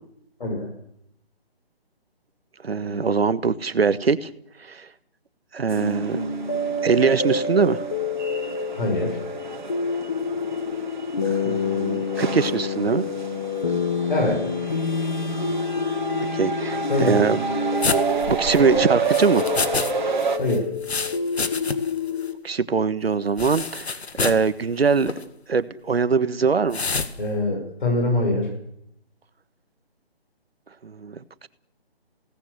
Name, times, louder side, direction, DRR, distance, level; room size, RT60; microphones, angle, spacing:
voice 1, 2.6-4.3 4.7-4.9 5.5-6.3 6.8-7.8 11.2-13.0 16.3-17.4 18.3-19.5 22.4-25.1 25.5-26.8 30.8-31.1, right 5 dB, 70° right, 14 dB, 1.5 m, -22 dB
sound 1, 5.7-22.4, left 3 dB, 25° left, 1.3 m, -27 dB
sound 2, 5.7-20.4, right 5 dB, 50° right, 2.6 m, -31 dB
voice 2, 8.7-9.2 14.1-14.4 16.7-17.2 20.4-20.7 27.2-28.5, left 2 dB, 50° left, 1 dB, 5.9 m, -24 dB
sound 3, 17.8-19.9 20.2-22.0 22.3-22.4 23.4-24.5 25.0-25.2 26.7-27.1, left 4 dB, 85° left, 2.1 m, -28 dB
28.5 x 18.0 x 8.1 m, 0.76 s
hypercardioid pair, 180°, 31 cm